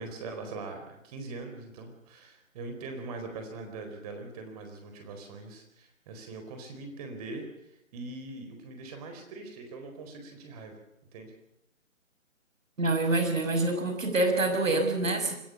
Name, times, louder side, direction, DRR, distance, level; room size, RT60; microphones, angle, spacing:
voice 1, 0.0-10.8 11.1-11.3, right 3 dB, 30° right, 5 dB, 4.4 m, -42 dB
voice 2, 12.8-15.3, right 2 dB, 75° right, 6 dB, 6.1 m, -26 dB
25.0 x 16.0 x 6.9 m, 0.80 s
figure-of-eight pair, 150°, 40 cm